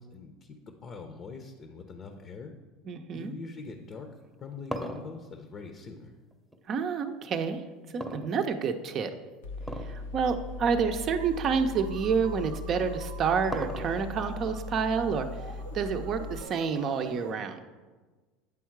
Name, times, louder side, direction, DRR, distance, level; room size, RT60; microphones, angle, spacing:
voice 1, 0.0-2.5 3.1-4.1 4.4-6.1, left 4 dB, 40° left, 5 dB, 0.7 m, -43 dB
voice 2, 2.9-3.3 6.7-7.6 7.9-9.1 9.8-15.3 15.7-17.6, right 6 dB, 45° right, 7 dB, 0.6 m, -29 dB
sound 1, 4.2-6.6 8.0-8.9 9.6-10.0 10.4-10.5 11.2-11.3 12.7-14.2, equal, 5° right, 0.8 m, -38 dB
Mechanical fan, 9.4-16.4, left 2 dB, 80° left, 0.5 m, -39 dB
sound 2, 11.1-17.3, right 4 dB, 90° right, 0.7 m, -49 dB
8.7 x 3.6 x 4.6 m, 1.3 s
hypercardioid pair, 85°, 0 cm